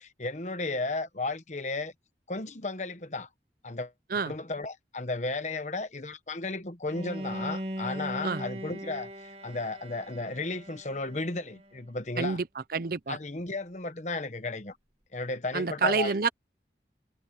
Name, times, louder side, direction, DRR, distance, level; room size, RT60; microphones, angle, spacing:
voice 1, 0.0-1.9 2.3-3.3 3.6-3.9 4.3-9.1 9.4-12.4 13.1-14.8 15.1-16.1, left 2 dB, 40° left, 1.2 m, -34 dB
Bowed string instrument, 6.8-11.8, equal, 35° right, 2.5 m, -39 dB
voice 2, 12.7-13.2 15.5-16.3, right 4 dB, 55° right, 0.7 m, -28 dB
head